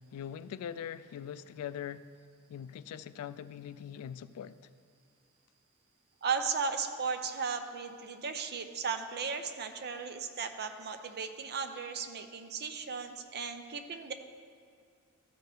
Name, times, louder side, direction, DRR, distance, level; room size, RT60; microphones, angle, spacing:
voice 1, 0.1-2.1 2.5-4.6, left 9 dB, 85° left, 0.3 m, -42 dB
voice 2, 6.2-14.1, right 5 dB, 50° right, 0.6 m, -36 dB
14.0 x 4.9 x 4.6 m
head